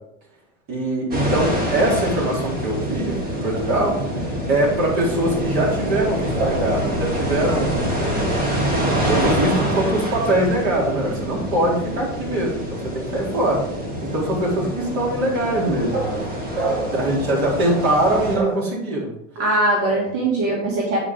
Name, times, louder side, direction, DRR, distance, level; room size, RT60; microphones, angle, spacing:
voice 1, 0.7-4.0 4.5-8.6 9.1-13.6 14.0-16.2 16.9-19.1 19.8-20.1, right 1 dB, 50° right, -3 dB, 3.1 m, -22 dB
sound 1, 1.1-18.4, equal, 25° right, 1.8 m, -26 dB
voice 2, 16.5-16.9 18.3-18.5 19.4-21.0, right 2 dB, 75° right, -3 dB, 2.2 m, -22 dB
8.7 x 5.0 x 3.5 m, 0.78 s
supercardioid pair, 135°, 37 cm